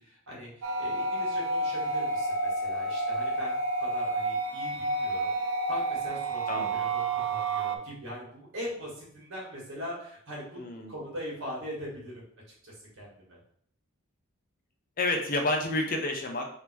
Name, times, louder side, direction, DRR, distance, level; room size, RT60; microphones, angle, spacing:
voice 1, 0.0-5.3 5.7-12.3 12.6-13.4, equal, 60° right, -3 dB, 1.6 m, -41 dB
sound 1, 0.6-7.8, right 2 dB, 80° right, 0.5 m, -30 dB
voice 2, 10.6-10.9 15.0-16.5, left 2 dB, 40° left, 2 dB, 0.6 m, -29 dB
3.5 x 2.8 x 4.6 m, 0.63 s
head